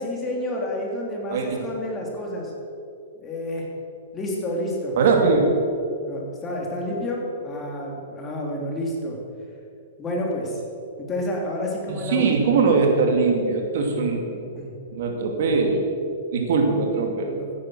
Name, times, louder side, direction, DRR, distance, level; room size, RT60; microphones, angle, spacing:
voice 1, 0.0-2.5 3.1-3.7 4.1-5.0 6.0-9.2 10.0-10.6 11.0-12.3 14.5-14.7 17.3-17.4, left 1 dB, 20° left, -1 dB, 3.1 m, -29 dB
voice 2, 1.3-1.6 5.0-5.5 11.9-14.5 14.9-15.8 16.3-17.5, right 4 dB, 65° right, 2 dB, 2.5 m, -21 dB
14.0 x 10.5 x 6.3 m, 2.5 s
hypercardioid pair, 145°, 0 cm